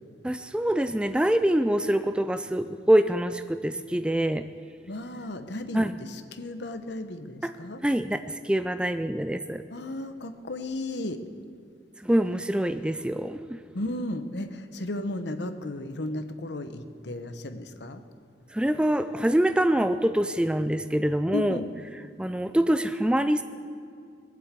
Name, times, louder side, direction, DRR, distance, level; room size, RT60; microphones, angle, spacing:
voice 1, 0.2-4.5 5.7-5.9 7.4-7.5 7.8-9.6 12.0-13.6 18.5-21.6 22.2-23.4, right 1 dB, 5° right, 10 dB, 0.3 m, -25 dB
voice 2, 4.9-7.8 9.7-11.2 13.7-18.0 21.3-21.7, left 1 dB, 70° left, 9 dB, 1.0 m, -34 dB
20.5 x 7.7 x 8.3 m, 2.4 s
head